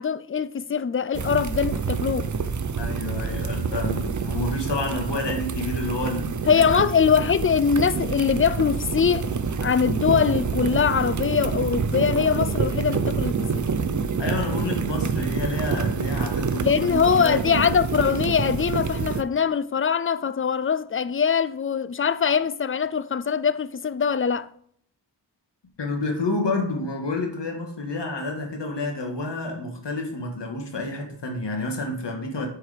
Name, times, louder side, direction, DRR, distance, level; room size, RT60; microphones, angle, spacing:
voice 1, 0.0-2.3 6.5-9.3 9.6-13.7 16.6-24.5, left 6 dB, 30° left, 0.4 m, -22 dB
sound 1, 1.1-19.2, right 5 dB, 45° right, 0.6 m, -27 dB
voice 2, 2.7-6.8 14.2-17.4 25.8-32.5, left 2 dB, 80° left, 1.9 m, -29 dB
8.0 x 4.8 x 5.0 m
wide cardioid pair, 75°, 42 cm